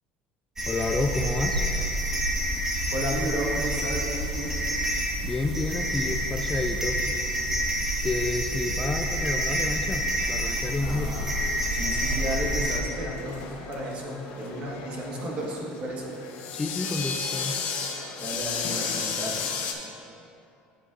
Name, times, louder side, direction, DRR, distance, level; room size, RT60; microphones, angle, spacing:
old bulb, 0.6-12.8, equal, 10° right, 0.9 m, -28 dB
voice 1, 0.7-1.6 5.2-7.0 8.0-11.1 16.5-17.6, left 2 dB, 15° left, 3 dB, 0.4 m, -30 dB
voice 2, 2.9-4.6 10.8-11.3 11.7-16.1 18.2-19.4, right 1 dB, 40° right, -2 dB, 1.4 m, -33 dB
sound 1, 10.2-19.7, left 6 dB, 65° left, 0.9 m, -35 dB
9.6 x 7.4 x 2.5 m, 2.7 s
cardioid pair, 135°, 3 cm